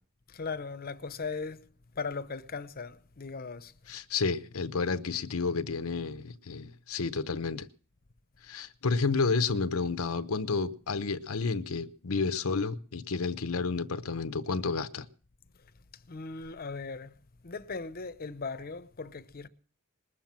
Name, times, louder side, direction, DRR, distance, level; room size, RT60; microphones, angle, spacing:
voice 1, 0.3-1.6 1.9-3.7 15.9-17.1 17.4-19.5, left 4 dB, 45° left, 0.8 m, -38 dB
voice 2, 3.9-7.7 8.4-15.1, left 4 dB, 80° left, 0.8 m, -31 dB
20.5 x 7.4 x 7.4 m
head